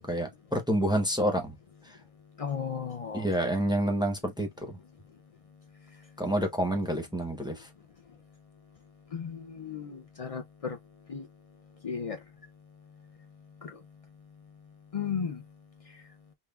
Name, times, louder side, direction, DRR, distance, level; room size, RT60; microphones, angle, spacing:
voice 1, 0.0-1.6 1.8-2.0 3.1-4.8 6.2-7.7, equal, 5° right, 0.6 m, -28 dB
voice 2, 2.4-3.3 9.1-10.8 11.1-11.2 11.8-12.2 13.6-13.7 14.9-15.4, left 7 dB, 65° left, 0.3 m, -34 dB
5.4 x 2.2 x 2.3 m
omnidirectional pair, 1.3 m